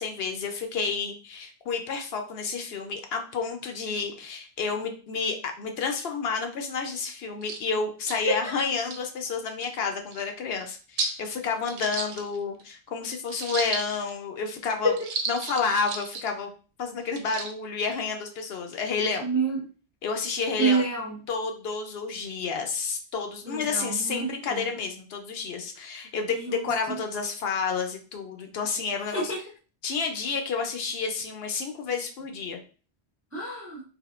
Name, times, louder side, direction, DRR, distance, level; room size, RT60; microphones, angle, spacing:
voice 1, 0.0-14.9 15.3-16.5 16.8-19.3 20.0-20.9 21.3-29.3 29.8-32.6, left 5 dB, 70° left, 4 dB, 0.7 m, -30 dB
sound 1, 7.0-7.1 7.4-7.6 8.1-8.2 8.7-9.0 9.6-9.7 10.1-10.2 11.0-11.2 11.6-12.6 13.3-14.1 14.9-16.3 17.1-17.5, right 4 dB, 90° right, 0.9 m, -33 dB
voice 2, 19.2-19.6 20.6-21.2 23.5-24.6 26.3-26.7 29.1-29.4 33.3-33.8, right 3 dB, 20° right, -2 dB, 0.4 m, -27 dB
3.4 x 2.6 x 2.4 m, 0.37 s
omnidirectional pair, 1.1 m